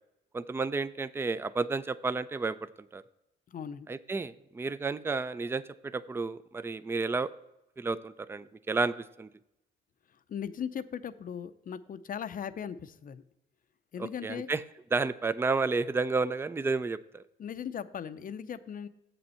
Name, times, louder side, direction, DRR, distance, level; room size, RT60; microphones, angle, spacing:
voice 1, 0.3-2.6 2.9-3.0 3.9-7.3 7.8-9.3 14.0-14.6 14.9-17.2, right 4 dB, 10° right, 15 dB, 0.4 m, -31 dB
voice 2, 3.5-3.9 10.3-13.2 13.9-14.5 17.4-18.9, left 8 dB, 45° left, 13 dB, 0.6 m, -38 dB
7.7 x 6.9 x 4.3 m, 0.87 s
cardioid pair, 90°, 20 cm